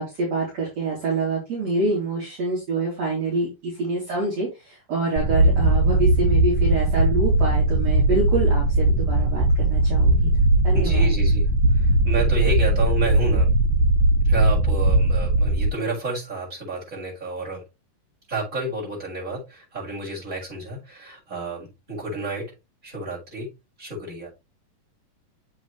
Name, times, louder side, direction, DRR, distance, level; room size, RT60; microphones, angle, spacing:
voice 1, 0.0-10.3 10.6-11.1, right 3 dB, 50° right, -4 dB, 4.1 m, -26 dB
sound 1, 5.2-15.7, right 2 dB, 70° right, 2.3 m, -19 dB
voice 2, 10.7-11.5 11.7-13.5 14.2-17.6 18.3-22.5 22.8-23.5 23.8-24.3, right 2 dB, 20° right, -5 dB, 6.8 m, -30 dB
7.9 x 7.4 x 3.3 m, 0.24 s
omnidirectional pair, 3.8 m